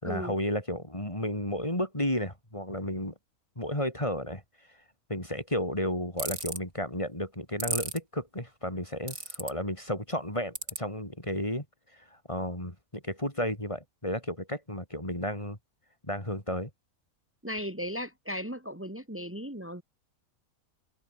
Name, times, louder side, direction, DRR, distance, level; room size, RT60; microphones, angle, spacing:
voice 1, 0.0-3.1 3.6-4.4 5.1-11.7 11.9-15.6 16.0-16.7, left 1 dB, 20° left, 5.2 m, -33 dB
sound 1, 6.2-6.6 7.6-8.0 9.1-9.5 10.5-10.8, right 2 dB, 75° right, 7.4 m, -32 dB
voice 2, 17.4-19.8, equal, 10° right, 3.5 m, -36 dB
omnidirectional pair, 1.5 m